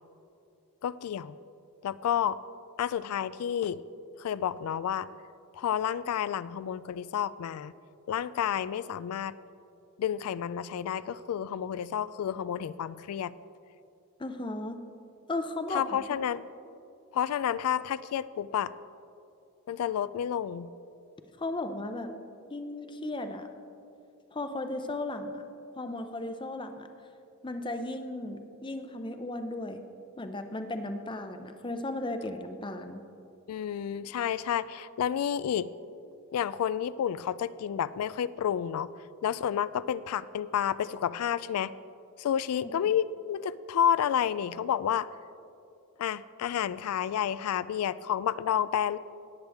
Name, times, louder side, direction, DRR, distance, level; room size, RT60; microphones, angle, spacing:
voice 1, 0.8-1.4 1.8-2.4 2.8-3.8 4.2-5.1 5.6-7.7 8.1-9.3 10.0-13.3 15.7-16.4 17.1-18.7 19.7-20.7 33.5-35.7 36.3-38.9 39.2-41.7 42.2-45.1 46.0-49.0, left 9 dB, 80° left, 16 dB, 0.3 m, -30 dB
voice 2, 14.2-14.8 15.3-15.8 21.4-22.1 22.5-23.5 24.3-25.4 25.8-26.9 27.4-29.8 30.2-33.0 42.6-42.7, left 2 dB, 20° left, 7 dB, 0.6 m, -35 dB
18.0 x 8.0 x 3.5 m, 2.7 s
head